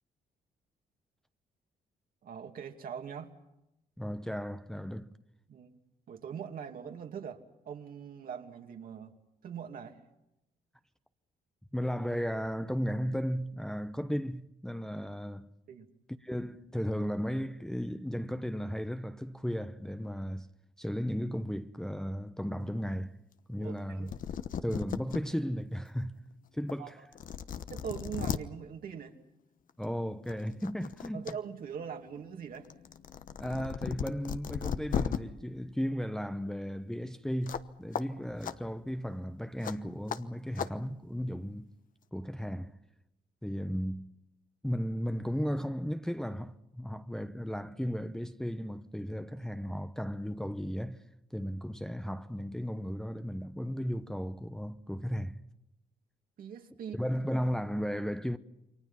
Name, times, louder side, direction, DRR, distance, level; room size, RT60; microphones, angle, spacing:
voice 1, 2.2-3.3 5.5-5.8 6.1-9.1 9.4-10.0 15.7-15.9 23.6-24.1 26.8-27.1 27.7-29.2 31.1-32.7 56.4-57.1, right 7 dB, 60° right, 2.6 m, -42 dB
voice 2, 4.0-5.1 11.7-15.5 16.2-20.5 20.8-23.2 23.5-24.1 24.6-26.2 26.5-27.0 29.8-31.3 33.4-41.7 42.1-42.7 43.4-44.1 44.6-51.0 51.3-55.4 57.0-58.4, equal, 5° left, 1.0 m, -35 dB
sound 1, 23.8-23.9 24.1-25.2 25.7-25.8 26.7-26.8 27.1-28.4 29.7-29.9 30.3-31.3 31.7-35.2 37.5-37.7 37.9-38.0 38.4-38.5 39.6-39.7 40.1-40.2 40.6-40.7, left 8 dB, 55° left, 1.1 m, -36 dB
29.0 x 23.5 x 5.8 m
cardioid pair, 80°, 16 cm